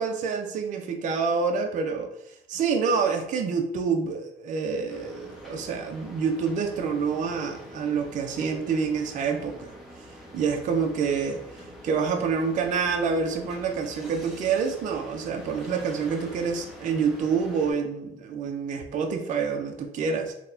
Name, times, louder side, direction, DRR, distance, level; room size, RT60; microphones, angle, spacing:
voice 1, 0.0-2.1 2.5-9.7 10.3-20.3, right 5 dB, 50° right, 3 dB, 0.4 m, -27 dB
sound 1, 4.9-17.7, equal, ahead, 0.9 m, -45 dB
3.9 x 2.1 x 2.6 m, 0.83 s
cardioid pair, 110°, 17 cm